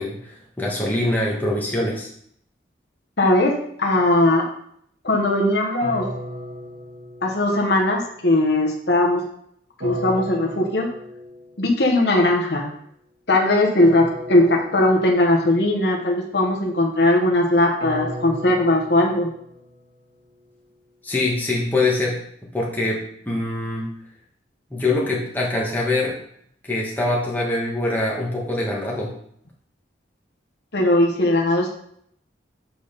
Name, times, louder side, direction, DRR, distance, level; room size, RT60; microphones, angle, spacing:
voice 1, 0.0-2.1 21.0-22.2 22.5-23.9 24.7-26.2 26.7-29.1, left 2 dB, 10° left, -4 dB, 1.5 m, -24 dB
voice 2, 3.2-3.5 3.8-4.5 5.0-6.1 7.2-9.2 9.8-10.9 11.6-12.7 13.3-19.3 30.7-31.7, left 1 dB, 60° left, 0 dB, 1.2 m, -19 dB
sound 1, 5.8-7.9 9.8-11.6 13.8-15.6 17.8-20.0, left 1 dB, 75° right, 2.0 m, -35 dB
7.8 x 4.1 x 5.2 m, 0.68 s
head